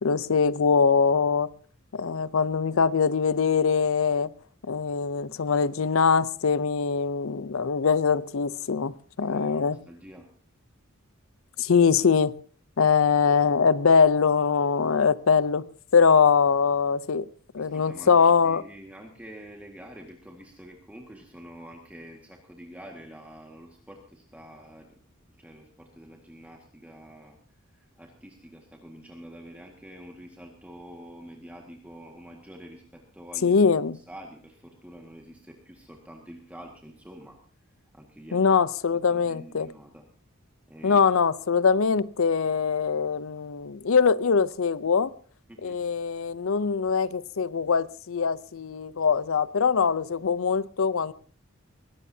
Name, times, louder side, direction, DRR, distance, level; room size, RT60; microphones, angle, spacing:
voice 1, 0.0-1.5 1.9-4.3 4.7-9.8 11.6-12.3 12.8-15.7 15.9-17.3 17.5-18.6 33.4-34.0 38.3-39.7 40.8-45.1 45.6-51.1, left 5 dB, 75° left, 0.6 m, -22 dB
voice 2, 9.2-10.3 17.6-24.9 25.4-27.4 27.7-33.6 33.9-37.4 37.9-38.6 38.9-40.1 40.7-41.1 45.5-45.8, equal, 5° right, 1.7 m, -47 dB
21.5 x 17.0 x 2.8 m
head